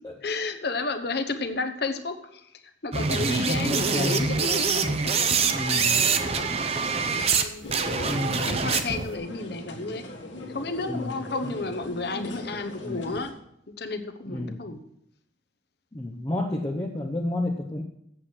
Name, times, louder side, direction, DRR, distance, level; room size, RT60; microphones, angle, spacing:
voice 1, 0.2-6.6 6.9-7.6 8.3-10.1 10.5-13.3 13.8-14.8, left 3 dB, 55° left, 7 dB, 1.0 m, -32 dB
sound 1, 2.9-7.4 7.7-9.1, right 5 dB, 30° right, 0.6 m, -25 dB
voice 2, 3.6-4.3 5.5-6.1 8.0-8.6 10.9-11.1 12.8-13.0 14.3-14.6 15.9-17.8, left 1 dB, 20° left, 1 dB, 0.7 m, -30 dB
sound 2, 7.6-13.3, left 1 dB, 70° left, 1.6 m, -39 dB
8.1 x 7.9 x 6.2 m, 0.77 s
head